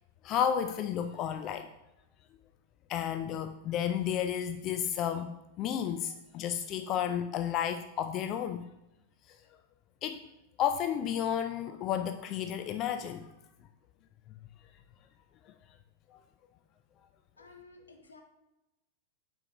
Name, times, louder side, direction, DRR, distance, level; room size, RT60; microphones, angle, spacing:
voice 1, 0.2-1.7 2.9-8.7 9.3-9.4 10.0-10.2 10.6-13.3 15.5-15.6 16.1-16.2, left 9 dB, 35° left, 8 dB, 0.3 m, -32 dB
voice 2, 17.4-18.2, left 3 dB, 75° left, 4 dB, 0.8 m, -54 dB
8.3 x 4.5 x 2.9 m, 0.95 s
figure-of-eight pair, 90°, 0 cm